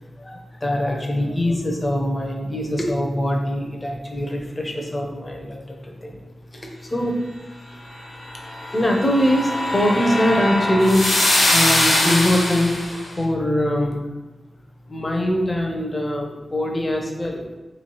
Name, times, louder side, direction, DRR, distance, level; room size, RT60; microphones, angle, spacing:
voice 1, 0.2-6.2 6.5-7.2 8.5-14.0 14.9-17.4, equal, 20° left, 0 dB, 0.7 m, -23 dB
sound 1, 8.3-13.0, left 1 dB, 65° left, 1.1 m, -21 dB
3.3 x 3.1 x 4.5 m, 1.1 s
wide cardioid pair, 120°, 0 cm